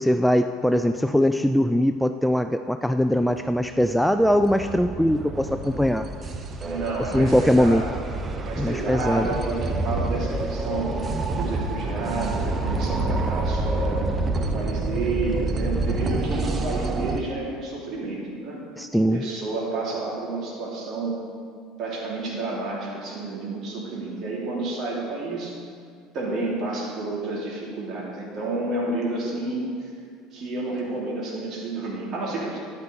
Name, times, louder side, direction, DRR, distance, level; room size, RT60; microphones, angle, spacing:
voice 1, 0.0-6.0 7.1-7.8 8.6-9.3 18.8-19.2, equal, ahead, 9 dB, 0.4 m, -21 dB
sound 1, 3.3-17.2, right 2 dB, 30° right, 0.9 m, -28 dB
voice 2, 6.6-8.0 8.4-10.9 11.4-14.0 14.4-18.6 19.1-21.2 21.8-25.6 26.1-29.9 30.3-32.6, right 2 dB, 45° right, -4 dB, 3.2 m, -30 dB
13.5 x 11.0 x 3.5 m, 2.3 s
figure-of-eight pair, 65°, 0 cm